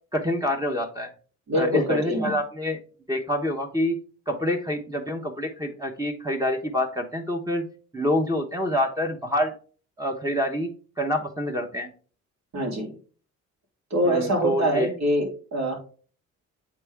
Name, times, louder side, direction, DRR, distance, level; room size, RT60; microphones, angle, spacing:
voice 1, 0.1-1.1 1.6-2.8 3.1-4.0 4.3-7.7 7.9-9.5 10.0-11.9 14.0-14.9, left 1 dB, 10° right, 3 dB, 1.0 m, -27 dB
voice 2, 1.5-2.4 12.5-12.9 13.9-15.8, equal, 65° right, 0 dB, 3.1 m, -24 dB
8.6 x 3.7 x 3.5 m, 0.39 s
cardioid pair, 90°, 30 cm